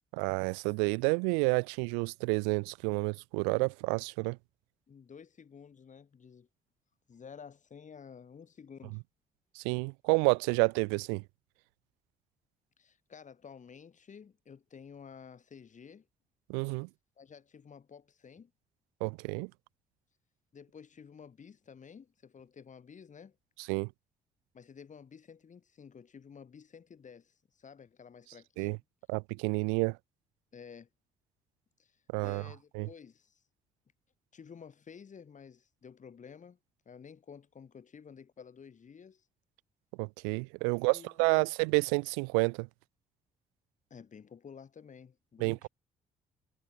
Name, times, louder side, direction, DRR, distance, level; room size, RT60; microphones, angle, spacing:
voice 1, 0.1-4.4 9.6-11.2 16.5-16.9 19.0-19.5 23.7-23.9 28.6-28.8 29.1-30.0 32.1-32.4 32.7-32.9 40.0-42.7 45.4-45.7, right 40 dB or more, 70° right, 0.7 m, -29 dB
voice 2, 4.9-6.5 7.1-9.0 12.8-16.1 17.2-18.5 20.5-23.4 24.5-28.8 30.5-30.9 31.8-32.0 32.2-33.4 34.3-36.6 36.9-39.3 40.7-41.5 43.9-45.7, left 6 dB, 40° left, 3.6 m, -52 dB
figure-of-eight pair, 45°, 19 cm